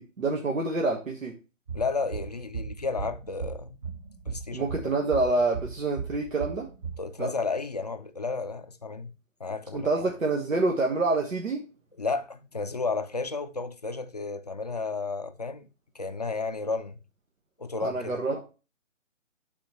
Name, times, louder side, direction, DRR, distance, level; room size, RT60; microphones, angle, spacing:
voice 1, 0.0-1.3 4.5-6.7 7.2-7.3 9.7-11.6 17.8-18.4, right 3 dB, 80° right, 1.5 m, -27 dB
voice 2, 1.7-3.9 4.2-5.0 7.0-9.1 9.4-9.9 12.0-15.7 15.9-17.0 17.6-18.2, left 4 dB, 35° left, 0.4 m, -32 dB
sound 1, 1.7-7.0, right 5 dB, 30° right, 1.1 m, -37 dB
12.5 x 4.2 x 3.0 m
figure-of-eight pair, 145°, 40 cm